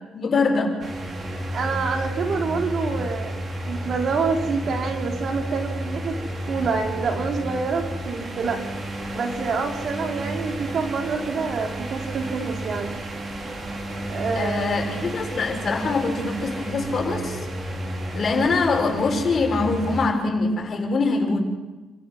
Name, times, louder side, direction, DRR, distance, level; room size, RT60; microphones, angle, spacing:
voice 1, 0.1-0.8 14.3-17.5 18.1-21.4, left 3 dB, 45° left, 2 dB, 6.5 m, -23 dB
sound 1, 0.8-20.1, right 1 dB, 40° right, 4.9 m, -32 dB
voice 2, 1.5-3.4 3.7-6.1 6.5-8.6 9.1-12.9 14.1-14.9, right 4 dB, 60° right, 3 dB, 3.8 m, -27 dB
30.0 x 15.5 x 6.5 m, 1.1 s
cardioid pair, 90°, 0 cm